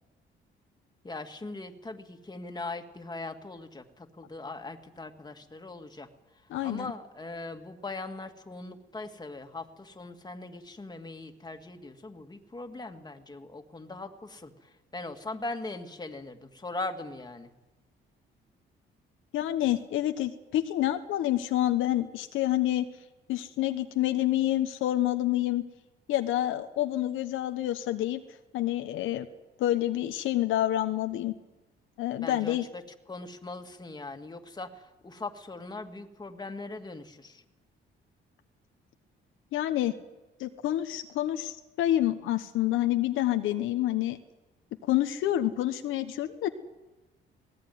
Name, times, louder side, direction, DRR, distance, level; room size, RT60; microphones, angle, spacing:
voice 1, 1.0-6.1 6.6-17.5 32.2-37.4, left 2 dB, 20° left, 4 dB, 2.2 m, -40 dB
voice 2, 6.5-6.9 19.3-22.9 23.3-25.6 26.1-28.2 28.5-29.3 29.6-31.3 32.0-32.6 39.5-39.9 40.4-44.2 44.9-46.5, left 13 dB, 90° left, 7 dB, 1.2 m, -28 dB
19.5 x 18.0 x 9.5 m, 1.1 s
cardioid pair, 90°, 20 cm